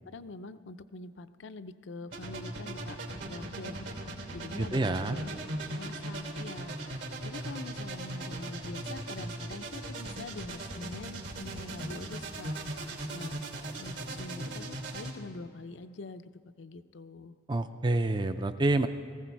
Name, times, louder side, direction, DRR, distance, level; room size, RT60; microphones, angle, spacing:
voice 1, 0.1-13.4 13.8-16.2 16.6-17.4, left 3 dB, 75° left, 12 dB, 0.6 m, -45 dB
sound 1, 2.1-15.1, right 1 dB, 70° right, 3.0 m, -39 dB
voice 2, 4.6-5.2 17.5-18.9, right 2 dB, 25° right, 9 dB, 0.4 m, -27 dB
19.0 x 15.5 x 4.6 m, 2.5 s
head